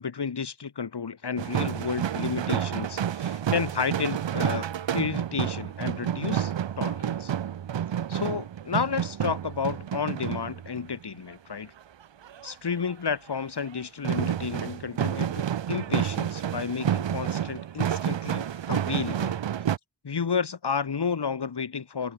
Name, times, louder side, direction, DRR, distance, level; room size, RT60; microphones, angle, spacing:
voice 1, 0.0-4.7 4.9-7.3 8.1-11.7 12.4-19.3 20.0-22.1, left 6 dB, 65° left, 4.6 m, -31 dB
sound 1, 1.4-10.9 12.2-12.5 12.9-13.0 13.3-13.7 14.0-19.8, right 9 dB, 80° right, 1.4 m, -29 dB
cardioid pair, 60°, 44 cm